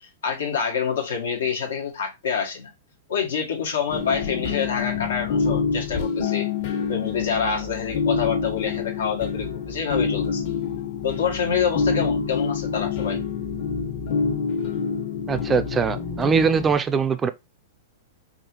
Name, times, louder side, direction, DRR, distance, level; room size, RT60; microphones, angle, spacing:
voice 1, 0.0-2.7 3.1-6.5 6.9-10.4 11.0-13.2, left 7 dB, 90° left, 1.5 m, -27 dB
sound 1, 3.9-16.7, left 5 dB, 60° left, 1.4 m, -27 dB
voice 2, 15.3-17.3, right 6 dB, 15° right, 0.4 m, -22 dB
4.7 x 2.7 x 3.0 m
hypercardioid pair, 140°, 0 cm